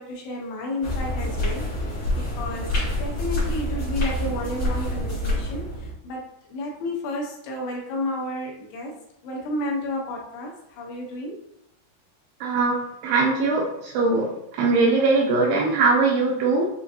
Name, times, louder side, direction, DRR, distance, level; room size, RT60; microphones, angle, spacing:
voice 1, 0.0-11.4 16.6-16.7, left 1 dB, 80° left, 0 dB, 2.7 m, -32 dB
sound 1, 0.8-5.9, left 1 dB, 55° left, 1.4 m, -27 dB
voice 2, 12.4-14.3 14.6-16.7, right 3 dB, 85° right, -2 dB, 2.3 m, -21 dB
6.7 x 2.5 x 2.6 m, 0.79 s
omnidirectional pair, 5.1 m